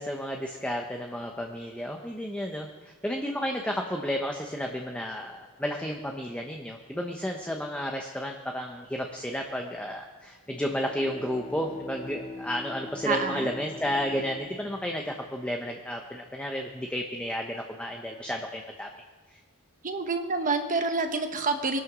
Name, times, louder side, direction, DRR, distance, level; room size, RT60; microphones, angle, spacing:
voice 1, 0.0-18.9, equal, 5° left, 2 dB, 0.9 m, -32 dB
Bowed string instrument, 10.5-16.1, left 2 dB, 35° left, 1.0 m, -44 dB
voice 2, 13.0-13.5 19.8-21.8, right 3 dB, 35° right, 6 dB, 1.0 m, -28 dB
21.5 x 9.8 x 6.1 m, 1.5 s
head